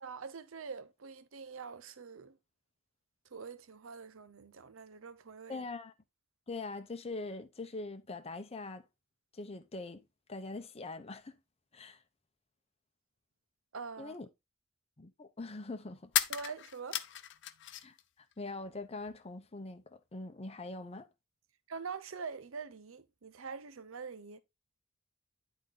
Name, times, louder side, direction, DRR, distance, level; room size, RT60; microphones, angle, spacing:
voice 1, 0.0-2.4 3.3-5.7 13.7-14.1 16.3-17.0 21.7-24.4, right 5 dB, 75° right, 0.7 m, -44 dB
voice 2, 5.5-5.9 6.5-8.8 9.3-10.0 10.3-11.4 11.7-12.0 14.0-14.3 15.0-16.1 17.8-18.0 18.4-21.1, left 3 dB, 30° left, 0.8 m, -42 dB
sound 1, 13.8-13.9 16.1-18.0 18.3-19.2, left 12 dB, 60° left, 0.7 m, -36 dB
10.0 x 4.0 x 3.8 m
head